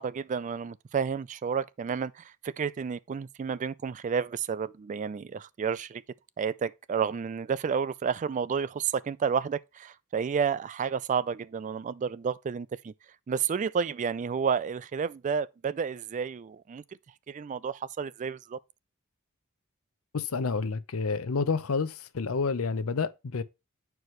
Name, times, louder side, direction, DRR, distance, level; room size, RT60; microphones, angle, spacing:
voice 1, 0.0-6.0 6.4-12.9 13.3-16.8 17.3-18.6, right 6 dB, 35° right, 0.3 m, -31 dB
voice 2, 20.1-23.4, left 4 dB, 75° left, 0.6 m, -29 dB
9.3 x 4.6 x 3.2 m
head